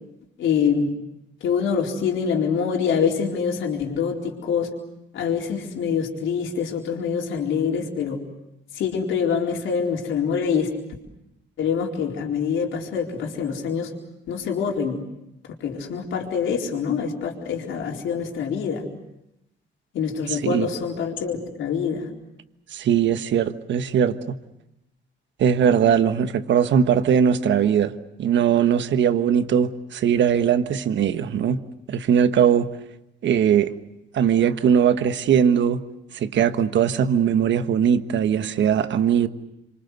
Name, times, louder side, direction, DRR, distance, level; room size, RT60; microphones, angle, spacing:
voice 1, 0.4-0.9 1.4-4.7 5.1-8.2 8.7-10.7 11.6-13.9 14.3-15.0 15.6-18.8 19.9-22.1, left 6 dB, 75° left, 4.3 m, -25 dB
voice 2, 20.3-20.7 22.7-24.4 25.4-32.7 33.2-33.7 34.1-35.8 36.1-39.3, right 8 dB, 65° right, 1.4 m, -20 dB
26.5 x 24.5 x 8.1 m
cardioid pair, 90°, 20 cm